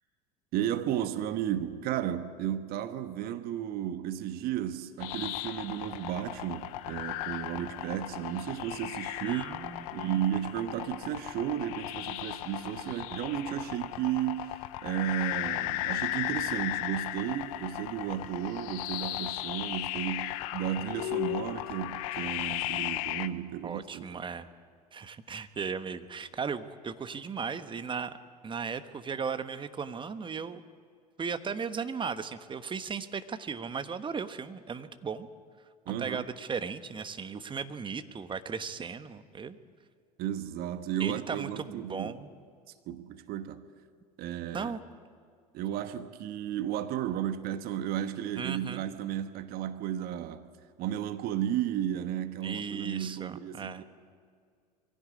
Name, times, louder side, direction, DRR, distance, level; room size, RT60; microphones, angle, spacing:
voice 1, 0.5-9.6 9.9-24.1 35.9-36.3 40.2-42.1 42.9-43.7 44.2-44.7 45.5-50.4 50.8-53.8, right 11 dB, 50° right, 1.3 m, -33 dB
sound 1, 5.0-23.3, left 16 dB, 65° left, 0.9 m, -36 dB
voice 2, 9.2-10.2 23.6-24.5 24.9-28.2 28.4-30.6 31.2-35.3 36.0-39.6 41.0-42.3 44.5-44.8 48.4-48.8 52.4-53.8, right 6 dB, 25° right, 1.3 m, -36 dB
22.5 x 16.0 x 8.6 m
hypercardioid pair, 70°, 20 cm